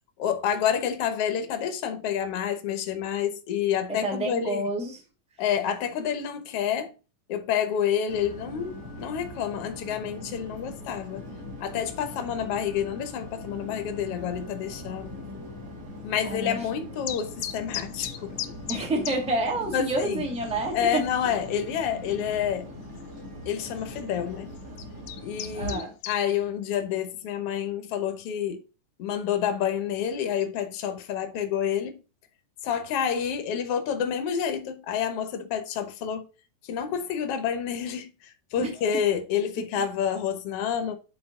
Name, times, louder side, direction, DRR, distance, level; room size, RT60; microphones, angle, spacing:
voice 1, 0.2-4.6 5.4-6.9 7.3-11.3 11.6-15.2 16.0-18.4 19.7-20.3 20.7-22.7 23.5-24.5 25.2-28.6 29.0-31.9 32.6-36.2 36.7-41.0, left 8 dB, 60° left, 1.6 m, -28 dB
voice 2, 3.9-5.0 15.1-15.4 16.2-16.6 18.7-21.0 25.5-25.9 38.6-39.0 39.8-39.9, right 1 dB, 5° right, 1.2 m, -29 dB
sound 1, 8.1-25.8, left 1 dB, 50° right, 4.2 m, -41 dB
sound 2, 17.1-19.2 19.5-19.6 20.1-20.2 20.4-20.9 21.4-21.5 22.9-23.0 23.8-24.0 24.6-26.2, left 12 dB, 80° left, 2.4 m, -35 dB
8.5 x 4.5 x 3.8 m
omnidirectional pair, 3.9 m